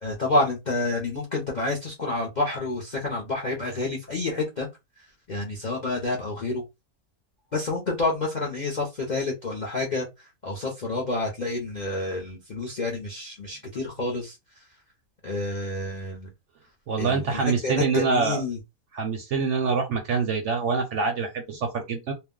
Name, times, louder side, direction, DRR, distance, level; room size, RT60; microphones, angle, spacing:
voice 1, 0.0-4.7 5.3-6.6 7.5-14.6 15.2-16.3 17.0-18.6, left 2 dB, 50° left, 0.5 m, -29 dB
voice 2, 16.9-18.4 18.9-22.1, right 5 dB, 65° right, 0.8 m, -25 dB
2.5 x 2.1 x 3.6 m
omnidirectional pair, 1.6 m